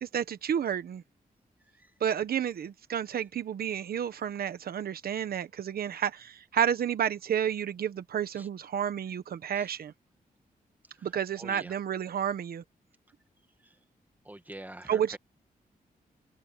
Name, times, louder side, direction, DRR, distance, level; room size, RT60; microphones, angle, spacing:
voice 1, 0.0-1.0 2.0-9.9 11.0-12.6 14.9-15.2, right 9 dB, 80° right, 1.1 m, -31 dB
voice 2, 11.4-11.8 13.6-13.8 14.2-15.2, right 1 dB, 10° right, 2.0 m, -46 dB
wide cardioid pair, 130°, 15 cm